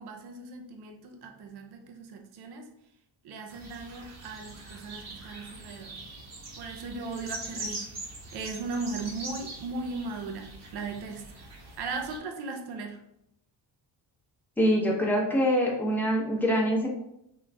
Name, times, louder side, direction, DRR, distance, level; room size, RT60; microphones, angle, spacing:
voice 1, 0.0-2.7 3.2-6.0 6.6-11.5 11.8-13.0, right 3 dB, 60° right, 4 dB, 0.7 m, -38 dB
sound 1, 3.5-12.2, right 2 dB, 40° right, 1.0 m, -43 dB
voice 2, 14.6-16.9, equal, 5° left, -3 dB, 0.8 m, -24 dB
3.8 x 2.4 x 3.3 m, 0.80 s
cardioid pair, 125°, 43 cm